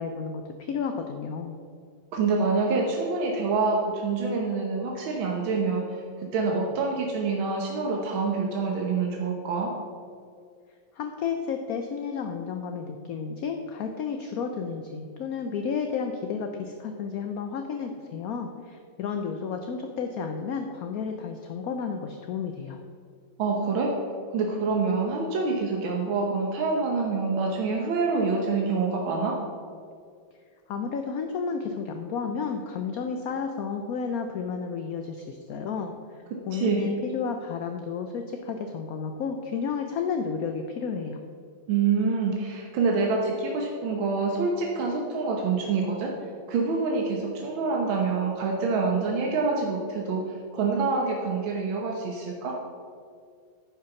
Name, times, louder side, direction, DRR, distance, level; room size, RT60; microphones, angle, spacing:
voice 1, 0.0-1.6 10.9-22.8 30.7-41.2, left 6 dB, 70° left, 5 dB, 0.9 m, -32 dB
voice 2, 2.1-6.0 6.3-9.7 23.4-23.9 24.3-29.4 36.3-37.0 41.7-46.1 46.5-52.5, right 4 dB, 90° right, -1 dB, 1.8 m, -26 dB
10.0 x 5.7 x 5.9 m, 2.2 s
omnidirectional pair, 2.1 m